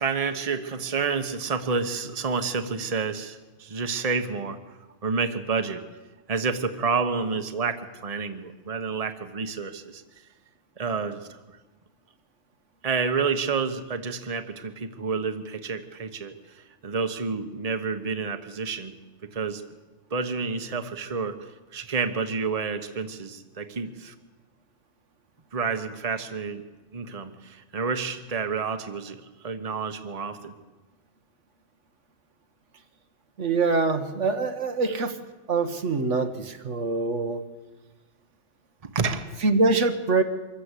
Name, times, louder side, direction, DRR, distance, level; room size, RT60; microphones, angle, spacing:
voice 1, 0.0-4.6 5.0-5.8 6.3-10.0 10.8-11.3 12.8-16.3 16.8-19.0 19.3-19.6 20.1-21.4 21.7-24.1 25.5-26.6 26.9-30.6 38.9-39.3, right 5 dB, 30° right, 8 dB, 1.2 m, -29 dB
voice 2, 33.4-35.2 35.5-37.4 39.4-40.2, right 3 dB, 75° right, 7 dB, 1.6 m, -24 dB
24.5 x 14.5 x 8.3 m, 1.2 s
omnidirectional pair, 1.3 m